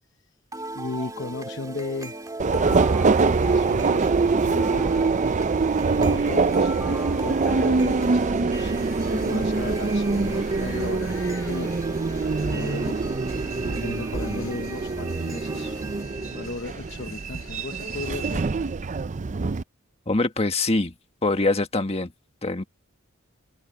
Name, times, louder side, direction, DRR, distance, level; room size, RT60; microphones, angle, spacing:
sound 1, 0.5-16.5, right 2 dB, 15° right, 2.4 m, -36 dB
voice 1, 0.7-2.1 2.5-2.9 3.3-4.9 5.9-11.7 12.3-13.0 13.7-15.8 16.2-18.5, left 3 dB, 60° left, 0.9 m, -36 dB
Subway metro underground, 2.4-19.6, right 4 dB, 35° right, 0.5 m, -24 dB
sound 2, 4.6-18.4, left 5 dB, 90° left, 4.8 m, -48 dB
voice 2, 20.1-20.9 21.2-22.1 22.4-22.6, left 2 dB, 30° left, 1.5 m, -23 dB
open air
head